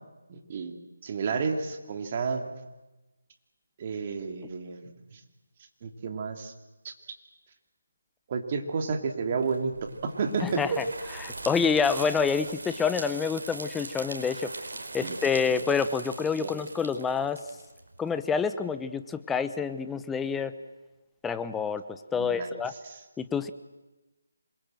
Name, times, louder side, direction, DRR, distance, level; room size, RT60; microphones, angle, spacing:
voice 1, 0.3-2.5 3.8-5.2 5.8-6.5 6.8-6.9 8.3-10.8 15.0-15.2 16.3-16.5 22.2-22.5 22.8-23.0, right 5 dB, 35° right, 5 dB, 2.9 m, -31 dB
sound 1, 9.4-18.3, right 2 dB, 70° right, 4.7 m, -41 dB
voice 2, 10.4-10.8 11.2-14.5 14.9-17.4 18.0-20.5 21.2-22.7 23.2-23.5, left 6 dB, 5° left, 11 dB, 0.9 m, -28 dB
27.0 x 21.5 x 7.8 m, 1.1 s
figure-of-eight pair, 160°, 0 cm